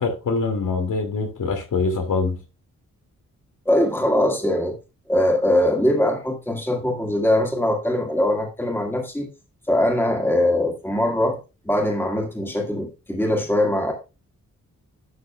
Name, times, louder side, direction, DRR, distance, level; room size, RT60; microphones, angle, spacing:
voice 1, 0.0-2.4, left 4 dB, 90° left, 2.3 m, -24 dB
voice 2, 3.7-4.8 5.1-9.3 9.7-11.4 11.7-13.9, left 1 dB, 5° left, 1.9 m, -21 dB
12.0 x 6.5 x 2.3 m
wide cardioid pair, 145°, 30 cm